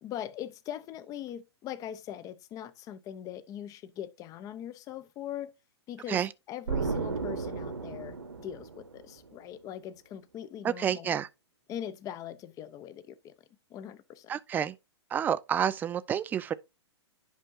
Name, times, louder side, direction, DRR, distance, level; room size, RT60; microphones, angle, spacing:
voice 1, 0.0-5.5 5.9-11.2 11.7-13.3 13.7-14.3, left 10 dB, 25° left, 0.7 m, -41 dB
Explosion, 6.7-9.3, right 4 dB, 75° right, 1.3 m, -34 dB
voice 2, 10.6-11.3 14.3-14.7 15.1-16.5, right 9 dB, 15° right, 0.4 m, -29 dB
10.5 x 5.3 x 2.6 m
figure-of-eight pair, 110°, 14 cm